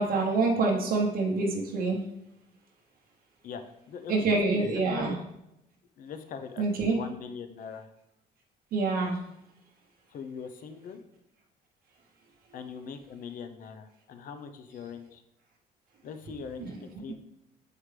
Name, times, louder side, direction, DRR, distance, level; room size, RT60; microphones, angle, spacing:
voice 1, 0.0-2.1 4.1-5.1 6.6-7.0 8.7-9.2 16.6-16.7 17.1-17.2, right 3 dB, 60° right, -1 dB, 0.9 m, -26 dB
voice 2, 3.9-5.2 6.0-7.9 10.1-11.0 12.5-15.2 16.0-17.1, left 6 dB, 55° left, 8 dB, 0.7 m, -41 dB
7.5 x 4.7 x 3.3 m, 0.86 s
cardioid pair, 110°, 17 cm